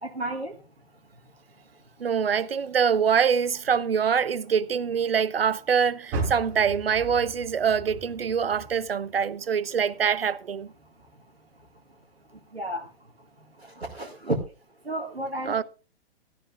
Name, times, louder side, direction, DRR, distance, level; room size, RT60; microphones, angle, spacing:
voice 1, 0.0-0.5 12.5-12.9 13.6-14.4 14.9-15.6, right 1 dB, 85° right, 2.1 m, -31 dB
voice 2, 2.0-10.7 15.5-15.6, right 7 dB, 70° right, 1.0 m, -24 dB
Car, 6.1-9.3 9.7-11.1 11.6-11.7 12.3-12.4, right 2 dB, 35° right, 5.6 m, -36 dB
16.5 x 13.0 x 2.5 m
figure-of-eight pair, 115°, 31 cm